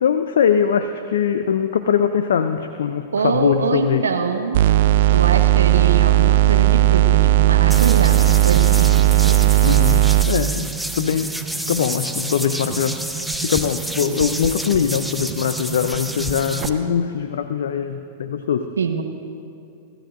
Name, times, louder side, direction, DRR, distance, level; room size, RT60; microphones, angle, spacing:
voice 1, 0.0-4.1 9.6-13.1 13.4-18.7, left 8 dB, 70° left, 9 dB, 0.5 m, -22 dB
voice 2, 3.1-4.6 5.1-9.4 18.8-19.0, right 5 dB, 80° right, 6 dB, 1.2 m, -24 dB
sound 1, 4.5-10.3, right 15 dB, 60° right, 0.4 m, -15 dB
sound 2, 6.7-16.7, right 9 dB, 35° right, 1.3 m, -34 dB
sound 3, 7.7-16.7, equal, ahead, 0.7 m, -29 dB
25.5 x 14.0 x 2.6 m, 2.6 s
figure-of-eight pair, 100°, 0 cm